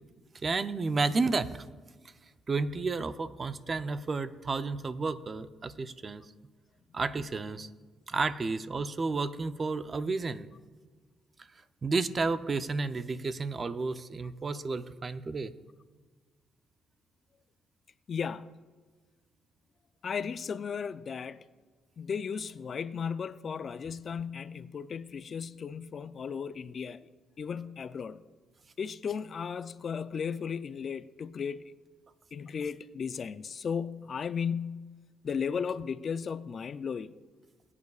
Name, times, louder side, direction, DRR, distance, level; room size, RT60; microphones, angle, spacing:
voice 1, 0.4-1.7 2.5-6.2 6.9-7.7 8.1-10.5 11.8-15.5, right 3 dB, 35° right, 0.5 m, -31 dB
voice 2, 18.1-18.6 20.0-21.4 22.0-27.0 27.4-28.2 28.8-31.6 32.3-34.9 35.2-37.1, left 6 dB, 50° left, 0.4 m, -35 dB
21.5 x 8.4 x 2.4 m
cardioid pair, 85°, 0 cm